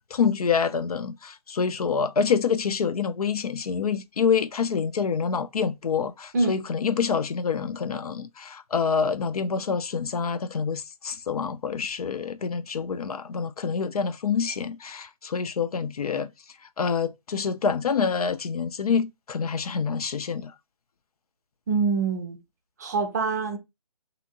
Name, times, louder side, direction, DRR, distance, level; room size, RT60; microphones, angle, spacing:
voice 1, 0.1-16.3 16.8-20.5, left 6 dB, 75° left, 0.4 m, -27 dB
voice 2, 21.7-22.4 22.8-23.6, right 4 dB, 25° right, 0.5 m, -25 dB
2.8 x 2.7 x 2.5 m
figure-of-eight pair, 155°, 19 cm